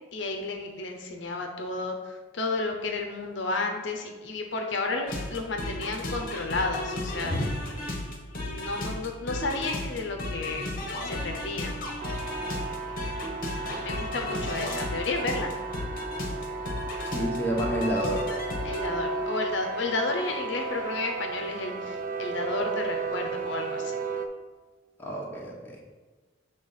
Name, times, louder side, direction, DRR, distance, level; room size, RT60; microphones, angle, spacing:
voice 1, 0.1-7.4 8.4-10.7 11.0-11.8 13.8-15.5 18.6-24.0, left 3 dB, 60° left, 3 dB, 0.7 m, -32 dB
sound 1, 5.1-18.9, left 1 dB, 45° left, 1.1 m, -34 dB
sound 2, 12.0-24.3, right 4 dB, 40° right, 0.5 m, -34 dB
voice 2, 17.0-18.3 25.0-25.8, equal, 10° left, -4 dB, 1.1 m, -30 dB
7.1 x 3.4 x 5.6 m, 1.3 s
head